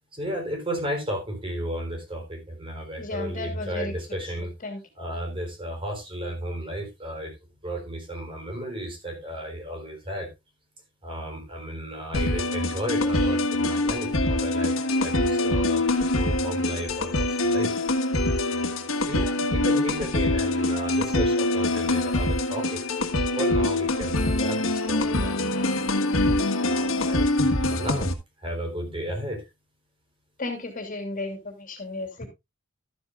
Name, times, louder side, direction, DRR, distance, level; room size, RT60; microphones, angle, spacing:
voice 1, 0.1-4.5 5.0-7.3 7.6-10.3 11.0-15.8 16.1-17.7 18.5-22.8 23.4-25.8 26.6-27.3 27.7-28.1 28.4-29.5, equal, 25° right, 2 dB, 4.0 m, -33 dB
voice 2, 3.0-3.9 4.6-4.8 30.4-32.3, left 2 dB, 40° left, 4 dB, 3.0 m, -34 dB
sound 1, 12.1-28.1, left 2 dB, 85° left, 1.6 m, -24 dB
13.0 x 9.7 x 2.5 m, 0.22 s
head